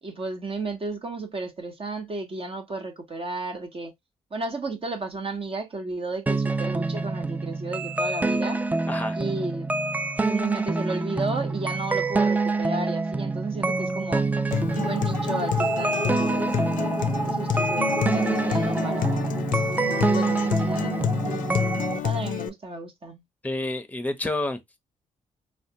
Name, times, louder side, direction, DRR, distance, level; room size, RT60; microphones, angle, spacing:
voice 1, 0.0-3.9 4.3-8.6 9.1-9.7 10.3-14.2 14.7-16.6 17.2-19.4 19.7-21.5 21.9-23.2, right 3 dB, 40° right, 0.9 m, -33 dB
sound 1, 6.3-22.0, right 3 dB, 10° right, 0.3 m, -26 dB
Acoustic guitar, 14.5-22.5, left 10 dB, 65° left, 0.4 m, -29 dB
voice 2, 23.4-24.6, left 2 dB, 10° left, 0.7 m, -29 dB
3.3 x 2.2 x 2.7 m
supercardioid pair, 60°, 15 cm